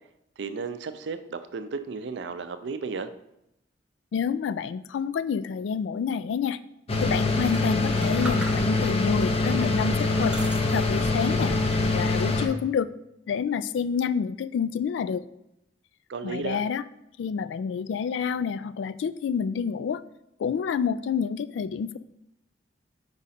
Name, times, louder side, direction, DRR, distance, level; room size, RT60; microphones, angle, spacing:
voice 1, 0.4-3.1 16.1-16.6, right 4 dB, 70° right, 10 dB, 0.5 m, -34 dB
voice 2, 4.1-6.6 7.0-10.4 10.7-11.5 11.9-12.9 13.3-15.2 16.2-16.8 17.2-20.0 20.4-22.0, left 6 dB, 85° left, 15 dB, 0.3 m, -28 dB
sound 1, 6.9-12.5, left 2 dB, 35° left, 0.6 m, -24 dB
sound 2, 7.2-9.0 9.5-11.3 11.7-12.4, right 1 dB, 5° right, 0.7 m, -42 dB
5.1 x 4.8 x 4.2 m, 0.82 s
head